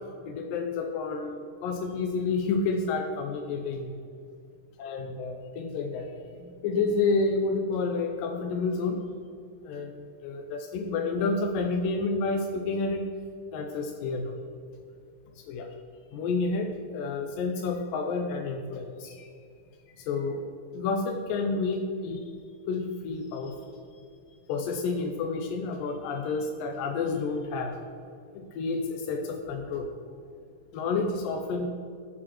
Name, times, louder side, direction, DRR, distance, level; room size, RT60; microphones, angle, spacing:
voice 1, 0.3-3.9 4.8-9.0 9.6-13.0 13.5-14.3 15.5-15.7 16.1-19.3 20.0-20.4 20.7-22.3 22.7-23.8 24.5-27.8 28.3-29.9 30.7-31.7, left 4 dB, 85° left, 3 dB, 2.4 m, -30 dB
18.5 x 6.3 x 3.0 m, 2.4 s
omnidirectional pair, 3.8 m